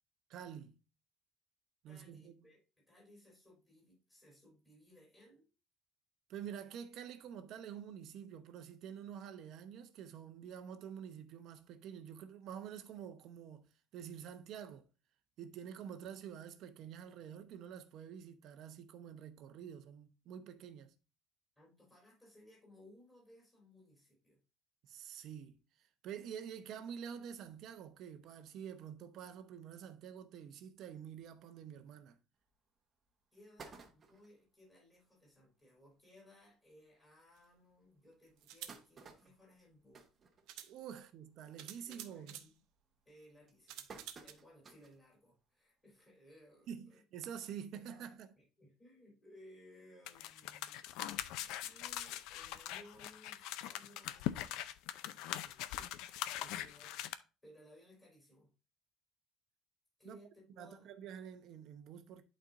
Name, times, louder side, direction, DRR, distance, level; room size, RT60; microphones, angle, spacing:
voice 1, 0.3-0.8 1.8-2.3 6.3-14.9 15.4-20.9 24.8-32.2 40.7-42.4 46.7-48.3 56.4-56.5 60.0-60.2 60.6-62.2, right 8 dB, 50° right, 0.8 m, -48 dB
voice 2, 1.9-2.6 2.9-5.5 21.6-24.4 33.3-40.0 41.9-42.6 43.1-43.9 44.2-47.0 47.7-48.1 48.4-54.6 55.1-55.7 56.0-57.1 57.4-58.5 60.0-60.9, left 1 dB, 15° left, 3.6 m, -62 dB
sound 1, 32.5-32.6 33.0-33.1 33.3-34.4 35.0-35.1 35.3-35.4 35.8-35.9 36.7-36.8 37.3-37.4 38.1-41.0 41.3-41.7 42.0-42.4 43.0-45.0 45.5-45.6 46.8-46.9, right 4 dB, 25° right, 1.0 m, -56 dB
sound 2, 37.4-37.5 38.4-38.8 39.9-40.0 40.5-40.7 41.6-42.5 43.7-44.3, right 11 dB, 75° right, 0.8 m, -49 dB
sound 3, 50.1-57.1, left 13 dB, 75° left, 0.5 m, -42 dB
11.0 x 4.4 x 2.5 m
cardioid pair, 170°, 0 cm